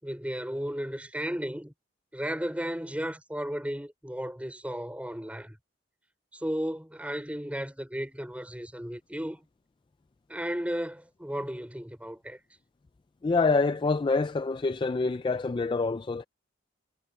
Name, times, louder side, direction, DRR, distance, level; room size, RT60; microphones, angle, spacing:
voice 1, 0.0-1.7 2.1-5.6 6.3-9.5 10.3-12.4, equal, 5° right, 4.8 m, -34 dB
voice 2, 13.2-16.2, left 3 dB, 25° left, 0.3 m, -26 dB
head